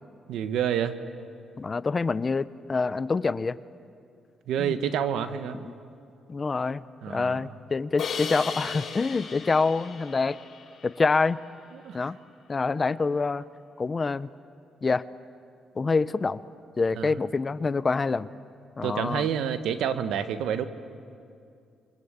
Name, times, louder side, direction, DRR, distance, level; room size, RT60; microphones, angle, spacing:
voice 1, 0.3-1.0 4.5-5.6 7.0-7.4 11.7-12.1 16.9-17.1 18.8-20.7, right 8 dB, 80° right, 10 dB, 1.4 m, -28 dB
voice 2, 1.6-3.6 4.6-4.7 5.6-5.7 6.3-10.4 10.8-11.4 11.9-12.2 12.5-13.4 13.8-14.3 14.8-15.0 15.8-16.4 16.8-18.3 18.8-19.3, left 4 dB, 30° left, 16 dB, 0.7 m, -26 dB
Crash cymbal, 8.0-11.1, left 6 dB, 55° left, 6.8 m, -36 dB
29.5 x 24.0 x 8.2 m, 2.4 s
cardioid pair, 90°, 0 cm